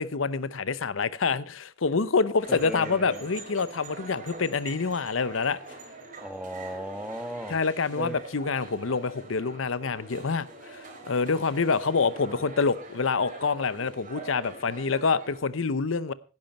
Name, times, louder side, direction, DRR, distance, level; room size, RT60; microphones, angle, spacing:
voice 1, 0.0-5.6 7.5-16.1, left 4 dB, 90° left, 0.8 m, -27 dB
sound 1, 2.4-15.4, right 2 dB, 45° right, 3.9 m, -44 dB
voice 2, 2.5-3.2 6.2-7.6 8.0-8.2, equal, 5° right, 1.2 m, -36 dB
16.5 x 10.5 x 4.2 m
head